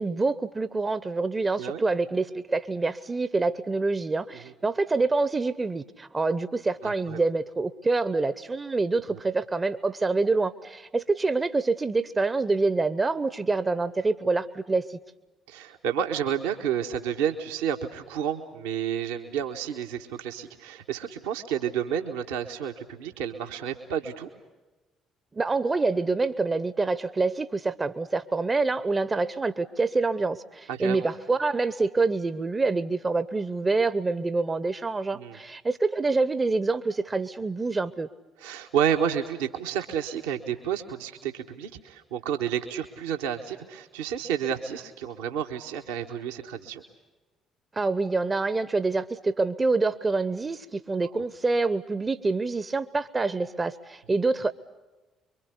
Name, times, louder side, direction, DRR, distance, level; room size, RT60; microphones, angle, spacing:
voice 1, 0.0-15.0 25.3-38.1 47.7-54.5, right 3 dB, 25° right, 15 dB, 0.9 m, -26 dB
voice 2, 6.8-7.2 9.1-9.2 15.5-24.3 30.7-31.1 35.1-35.4 38.4-46.8, right 8 dB, 70° right, 3 dB, 1.4 m, -30 dB
26.0 x 23.5 x 8.3 m, 1.1 s
figure-of-eight pair, 45°, 0 cm